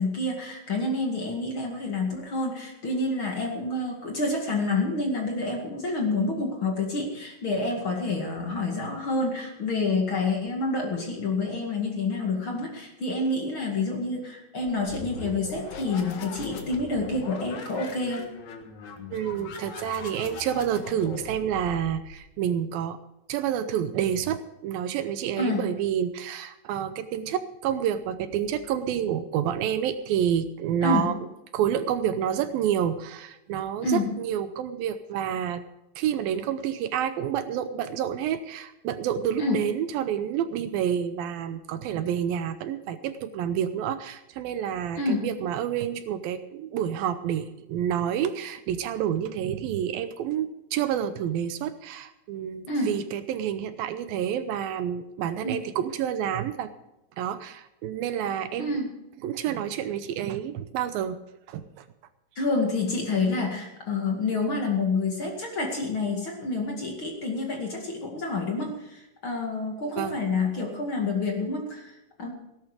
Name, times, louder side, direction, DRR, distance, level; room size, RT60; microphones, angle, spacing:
voice 1, 0.0-18.3 25.4-25.7 30.8-31.1 33.8-34.1 39.4-39.6 45.0-45.3 52.7-53.0 55.4-55.6 58.6-58.9 62.4-72.3, left 3 dB, 40° left, 1 dB, 2.5 m, -28 dB
sound 1, 14.6-22.3, left 4 dB, 55° left, 2.7 m, -40 dB
voice 2, 19.1-23.0 23.3-31.2 31.5-35.6 36.0-56.7 57.2-58.8 59.2-61.2 61.5-61.9 70.0-70.2, right 9 dB, 80° right, 11 dB, 2.5 m, -29 dB
17.5 x 11.5 x 5.0 m, 0.91 s
omnidirectional pair, 4.3 m